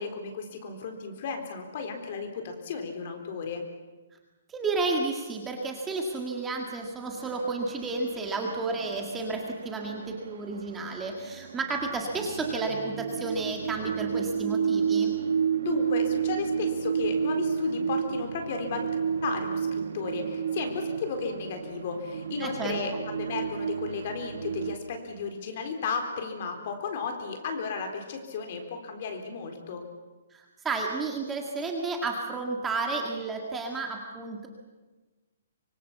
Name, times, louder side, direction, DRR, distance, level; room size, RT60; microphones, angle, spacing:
voice 1, 0.0-3.6 15.6-18.9 19.2-29.8, left 5 dB, 40° left, 5 dB, 3.9 m, -34 dB
voice 2, 4.5-15.2 22.4-22.8 30.3-34.5, right 3 dB, 10° right, 1 dB, 1.9 m, -32 dB
sound 1, 7.2-24.7, right 7 dB, 80° right, 2.1 m, -31 dB
25.0 x 24.0 x 7.2 m, 1.2 s
hypercardioid pair, 175°, 0 cm